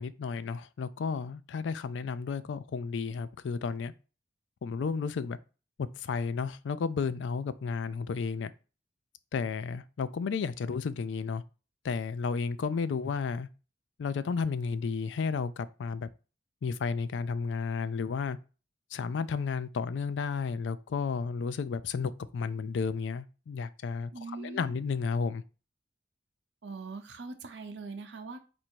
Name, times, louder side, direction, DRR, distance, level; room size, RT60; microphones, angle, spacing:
voice 1, 0.0-3.9 4.6-5.4 6.0-8.5 9.3-11.4 11.8-13.5 14.0-16.1 16.6-18.4 18.9-25.4, left 5 dB, 90° left, 0.4 m, -32 dB
voice 2, 24.1-24.7 26.6-28.4, right 3 dB, 80° right, 0.7 m, -41 dB
4.3 x 2.6 x 4.5 m
head